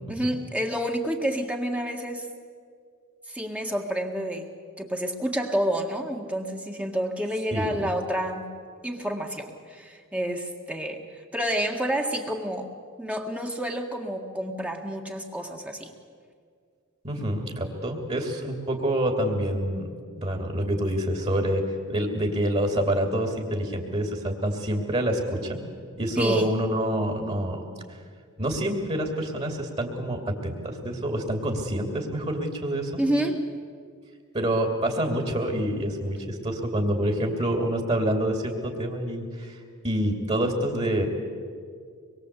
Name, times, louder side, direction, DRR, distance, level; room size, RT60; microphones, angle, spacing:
voice 1, 0.1-2.3 3.3-4.5 4.8-8.5 8.8-11.0 11.3-12.7 13.0-15.9 26.2-26.5 33.0-33.4, equal, 5° right, 2 dB, 1.8 m, -29 dB
voice 2, 7.5-7.9 17.0-21.6 21.9-25.6 26.0-27.6 28.4-33.0 34.3-39.6 39.8-41.1, right 1 dB, 30° right, 4 dB, 2.8 m, -27 dB
25.5 x 22.0 x 8.3 m, 2.1 s
head